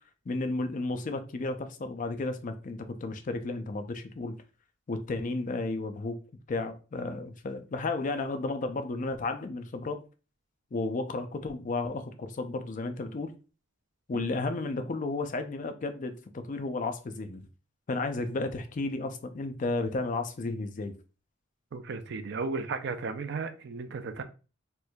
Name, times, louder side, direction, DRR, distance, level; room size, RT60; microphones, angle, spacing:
voice 1, 0.3-4.4 4.9-6.2 6.5-10.0 10.7-13.3 14.1-17.5 17.9-20.9, left 3 dB, 40° left, 0.4 m, -33 dB
voice 2, 21.7-24.2, right 4 dB, 55° right, 0.4 m, -35 dB
4.4 x 2.5 x 2.2 m
head